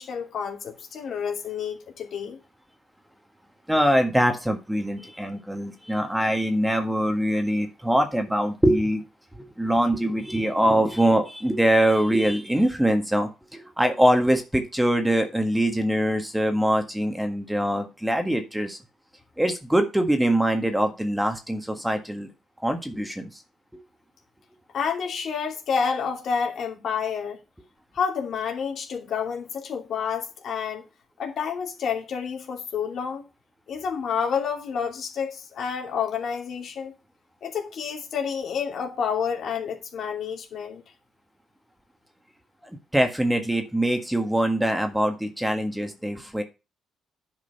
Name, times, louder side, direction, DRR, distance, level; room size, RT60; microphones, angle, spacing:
voice 1, 0.0-2.4 24.7-27.4 27.9-30.9 31.2-33.2 33.7-36.9 37.4-40.8, left 6 dB, 65° left, 2.7 m, -29 dB
voice 2, 3.7-9.0 9.3-18.8 19.4-22.3 22.6-23.3 42.9-46.4, right 1 dB, 5° right, 1.6 m, -23 dB
10.0 x 5.2 x 5.6 m
cardioid pair, 90°, 0 cm